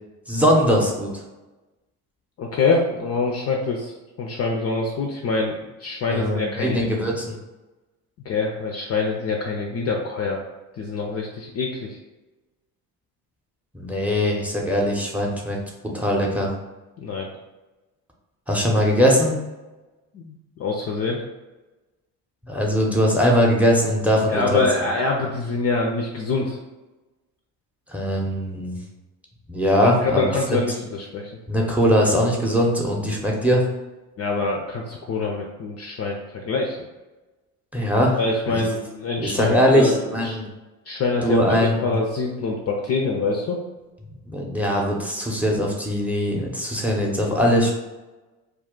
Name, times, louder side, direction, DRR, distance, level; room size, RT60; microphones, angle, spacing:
voice 1, 0.3-1.1 6.1-7.4 13.7-15.6 15.9-16.5 18.5-19.4 22.4-24.6 27.9-28.8 29.5-30.6 31.5-33.6 37.7-38.2 38.5-38.6 39.2-40.4 41.2-41.9 44.2-47.7, equal, 5° right, -1 dB, 0.7 m, -21 dB
voice 2, 2.4-6.9 8.2-10.4 10.8-12.0 17.0-17.3 20.1-21.2 24.3-26.6 29.8-31.3 34.2-36.8 38.2-40.4 40.9-43.6, left 3 dB, 35° left, 0 dB, 0.5 m, -25 dB
2.3 x 2.3 x 3.7 m, 1.1 s
hypercardioid pair, 60°, 45 cm